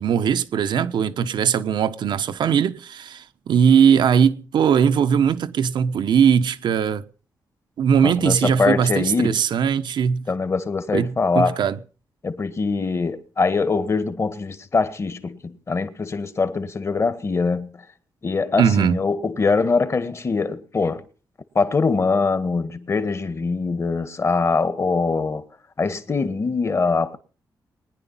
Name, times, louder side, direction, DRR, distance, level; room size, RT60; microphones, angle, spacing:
voice 1, 0.0-7.0 7.8-10.3 10.9-11.8 18.6-19.1, right 7 dB, 80° right, 1.2 m, -20 dB
voice 2, 8.0-9.4 10.3-11.6 12.2-17.7 18.2-21.0 21.5-25.4 25.8-27.2, left 4 dB, 35° left, 1.8 m, -23 dB
21.5 x 10.5 x 5.7 m
cardioid pair, 105°, 8 cm